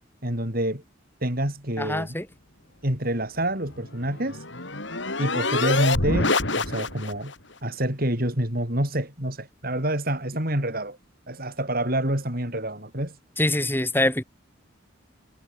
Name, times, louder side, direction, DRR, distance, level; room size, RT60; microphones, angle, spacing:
voice 1, 0.2-0.8 1.2-2.2 2.8-4.4 5.2-7.3 7.6-11.0 11.3-13.2, right 1 dB, 50° right, 7.7 m, -27 dB
voice 2, 1.8-2.3 13.4-14.2, left 1 dB, 10° left, 5.9 m, -24 dB
sound 1, 3.7-7.3, left 3 dB, 65° left, 7.1 m, -26 dB
head